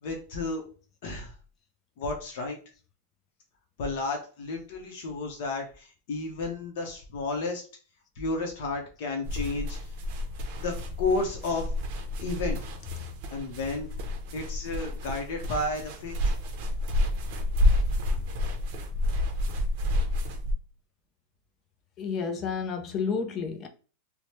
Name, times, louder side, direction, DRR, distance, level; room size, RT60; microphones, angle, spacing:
voice 1, 0.0-0.6 1.0-1.4 2.0-2.6 3.8-7.6 8.2-9.9 10.6-11.7 12.2-12.6 13.3-13.9 14.3-16.3, left 3 dB, 55° left, 0.7 m, -32 dB
sound 1, 9.2-20.5, left 1 dB, 45° right, 0.6 m, -29 dB
voice 2, 22.0-23.7, left 5 dB, 25° left, 0.4 m, -31 dB
3.0 x 2.0 x 3.0 m
supercardioid pair, 165°, 0 cm